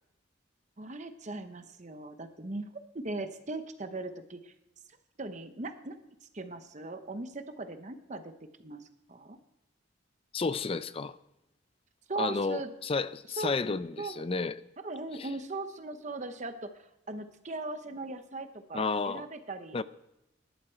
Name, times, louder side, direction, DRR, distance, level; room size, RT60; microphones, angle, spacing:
voice 1, 0.8-2.7 2.9-4.5 5.2-6.0 6.3-8.3 8.6-9.4 12.1-12.7 13.4-13.6 14.0-14.2 14.8-19.8, right 2 dB, 35° right, 0.8 m, -39 dB
voice 2, 10.3-11.2 12.2-14.6 15.1-15.3 18.7-19.2 19.7-19.8, left 4 dB, 30° left, 0.4 m, -32 dB
20.0 x 11.5 x 4.5 m
head